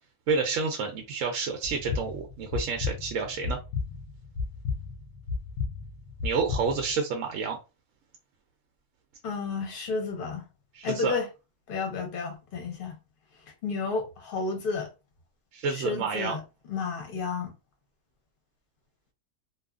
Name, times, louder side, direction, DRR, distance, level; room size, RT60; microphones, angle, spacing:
voice 1, 0.3-3.6 6.2-7.6 10.7-11.1 15.5-16.3, right 5 dB, 70° right, 0.9 m, -29 dB
sound 1, 1.6-6.9, left 5 dB, 70° left, 0.5 m, -34 dB
voice 2, 9.2-10.4 10.8-11.3 11.7-13.0 13.6-14.9 15.7-16.4 16.7-17.5, left 4 dB, 45° left, 0.8 m, -31 dB
2.7 x 2.4 x 2.3 m
omnidirectional pair, 1.5 m